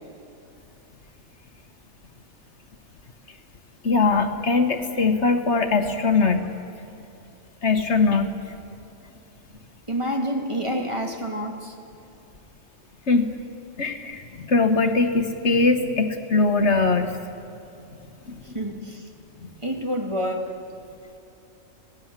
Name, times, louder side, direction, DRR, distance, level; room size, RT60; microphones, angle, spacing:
voice 1, 3.8-6.5 7.6-8.3 13.1-13.3 13.8-17.1 18.3-18.4 19.4-19.5, left 3 dB, 60° left, 7 dB, 1.6 m, -21 dB
voice 2, 9.9-11.8 18.4-19.1 19.6-20.5, equal, 25° right, 2 dB, 2.1 m, -28 dB
26.0 x 17.5 x 7.5 m, 2.7 s
omnidirectional pair, 1.4 m